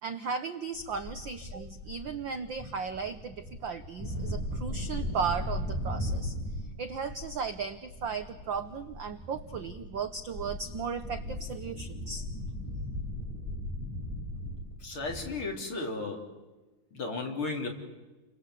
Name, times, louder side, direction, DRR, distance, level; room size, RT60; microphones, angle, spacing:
voice 1, 0.0-6.3 6.8-12.2, right 5 dB, 65° right, 9 dB, 1.2 m, -36 dB
sound 1, 0.8-15.4, left 1 dB, 5° right, 5.9 m, -38 dB
voice 2, 14.8-16.3 16.9-17.7, left 3 dB, 45° left, 1 dB, 4.4 m, -34 dB
30.0 x 24.0 x 8.3 m, 1.2 s
omnidirectional pair, 3.4 m